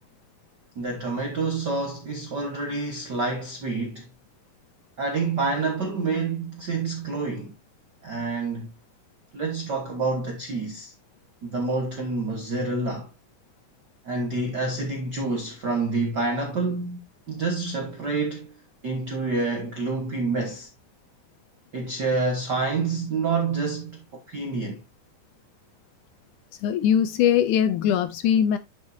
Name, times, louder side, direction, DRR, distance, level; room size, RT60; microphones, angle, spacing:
voice 1, 0.8-4.1 5.0-7.5 8.0-8.7 9.3-10.9 11.4-13.1 14.0-18.5 18.8-20.7 21.7-24.8, right 3 dB, 60° right, 1.1 m, -28 dB
voice 2, 26.6-28.6, left 9 dB, 75° left, 2.0 m, -21 dB
10.5 x 6.4 x 2.7 m
omnidirectional pair, 4.0 m